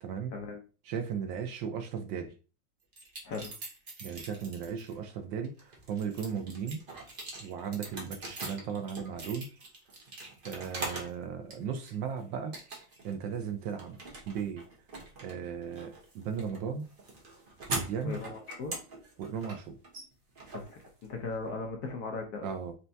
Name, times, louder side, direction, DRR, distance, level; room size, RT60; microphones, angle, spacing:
voice 1, 0.0-0.3 0.9-2.3 4.0-6.8 7.4-9.6 10.4-12.6 13.0-14.0 14.3-14.6 15.2-16.9 17.7-18.2 19.2-19.8 22.4-22.7, right 7 dB, 75° right, 1.3 m, -36 dB
sound 1, 2.9-4.9 5.4-11.2 11.5-12.1 12.5-13.1 13.4-21.3, right 2 dB, 35° right, 0.9 m, -42 dB
voice 2, 3.2-3.6 18.0-18.8 20.5-22.5, left 4 dB, 60° left, 1.1 m, -38 dB
4.4 x 3.3 x 2.7 m
omnidirectional pair, 2.2 m